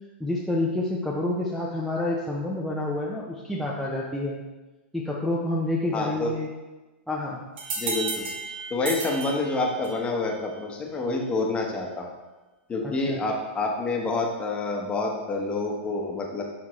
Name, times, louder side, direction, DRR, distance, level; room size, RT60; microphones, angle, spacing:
voice 1, 0.2-4.4 4.9-6.5 7.1-7.4 12.8-13.2, left 2 dB, ahead, -5 dB, 0.7 m, -28 dB
voice 2, 5.9-6.3 7.8-8.2 8.7-12.1 12.7-16.4, left 3 dB, 20° left, 1 dB, 1.1 m, -28 dB
sound 1, 7.6-10.1, right 4 dB, 70° right, 1.5 m, -33 dB
11.0 x 3.6 x 3.2 m, 1.2 s
hypercardioid pair, 130°, 6 cm